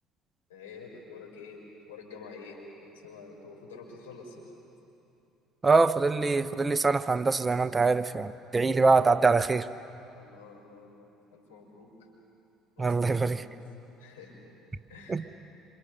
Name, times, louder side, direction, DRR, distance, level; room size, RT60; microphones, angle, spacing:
voice 1, 0.5-1.6 1.9-4.5 10.1-12.0 12.8-13.5 14.0-14.4 14.9-15.2, left 4 dB, 90° left, -1 dB, 5.3 m, -48 dB
voice 2, 5.6-9.7 12.8-13.4 15.1-15.2, right 3 dB, 25° right, 13 dB, 1.0 m, -24 dB
27.0 x 27.0 x 6.7 m, 2.7 s
hypercardioid pair, 65°, 0 cm